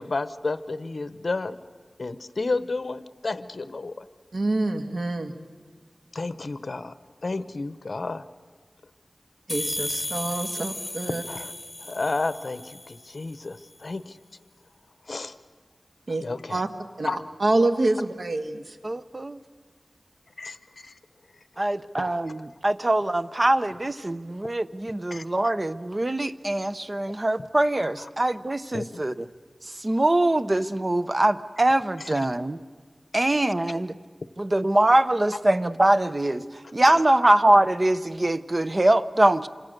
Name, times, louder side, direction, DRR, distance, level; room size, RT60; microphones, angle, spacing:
voice 1, 0.0-1.6 2.0-4.1 6.1-6.9 7.2-8.3 11.3-11.5 11.8-14.2 15.1-15.4 16.2-16.6 17.0-17.2 20.4-20.9 22.0-22.2 25.1-25.2 28.7-29.0 36.9-37.0, left 3 dB, 70° left, 13 dB, 0.9 m, -31 dB
voice 2, 4.3-5.3 9.5-11.2 16.1-16.2 16.5-16.7 17.0-18.8, right 2 dB, 75° right, 7 dB, 1.6 m, -26 dB
sound 1, 9.5-13.1, left 1 dB, 25° left, 1.4 m, -34 dB
voice 3, 18.8-19.4 21.6-29.3 29.6-32.6 33.1-33.9 34.4-39.5, right 1 dB, 35° right, 12 dB, 0.8 m, -23 dB
27.5 x 25.5 x 6.7 m, 1.5 s
wide cardioid pair, 75°, 0 cm